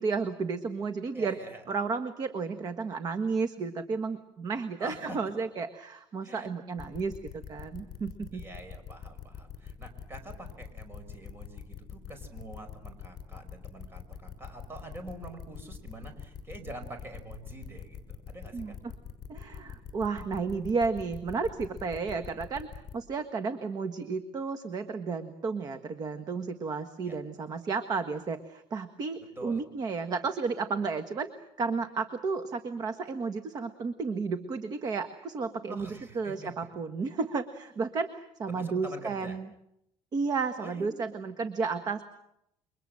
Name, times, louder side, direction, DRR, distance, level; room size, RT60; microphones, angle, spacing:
voice 1, 0.0-1.4 1.7-8.4 18.5-18.7 19.3-22.7 22.9-31.3 31.6-39.5 40.1-42.0, right 4 dB, 35° right, 10 dB, 1.5 m, -32 dB
voice 2, 1.1-1.8 4.8-5.2 6.2-6.5 8.3-18.8 27.1-27.2 29.4-29.6 35.7-36.7 38.5-39.4 40.6-40.9, right 1 dB, 20° right, 7 dB, 5.1 m, -45 dB
sound 1, 6.8-22.9, left 8 dB, 35° left, 5.9 m, -43 dB
29.0 x 24.0 x 7.7 m, 0.79 s
cardioid pair, 160°, 11 cm